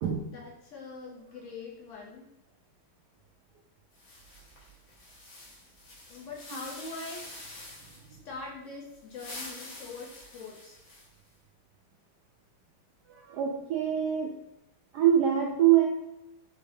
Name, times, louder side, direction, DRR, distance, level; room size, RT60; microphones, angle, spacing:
voice 1, 0.2-2.3 6.1-7.3 8.1-10.8 14.1-14.2, left 3 dB, 85° left, -2 dB, 0.6 m, -43 dB
sound 1, 3.9-8.1 9.0-11.3, left 2 dB, 70° left, 1.7 m, -46 dB
voice 2, 13.1-14.3 14.9-15.9, right 10 dB, 80° right, -1 dB, 0.9 m, -24 dB
4.1 x 3.2 x 2.6 m, 0.91 s
omnidirectional pair, 2.2 m